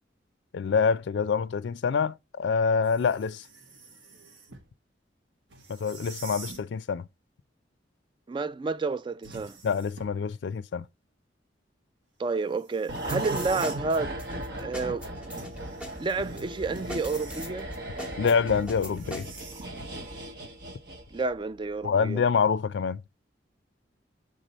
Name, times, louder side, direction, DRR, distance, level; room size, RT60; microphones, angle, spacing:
voice 1, 0.5-3.4 5.7-7.1 9.6-10.8 18.2-19.3 21.8-23.0, left 5 dB, 65° left, 0.4 m, -26 dB
sound 1, 2.8-4.7 5.5-6.7 9.2-10.3 12.5-13.9 15.4-17.7 18.5-20.0, right 4 dB, 80° right, 1.3 m, -48 dB
voice 2, 8.3-9.6 12.2-14.2 14.6-15.1 16.0-17.7 21.1-22.2, right 3 dB, 25° right, 0.3 m, -30 dB
sound 2, 12.9-21.4 21.7-21.9, right 1 dB, 60° right, 1.0 m, -37 dB
sound 3, 13.0-19.4, equal, 5° right, 1.0 m, -41 dB
6.7 x 3.7 x 4.1 m
head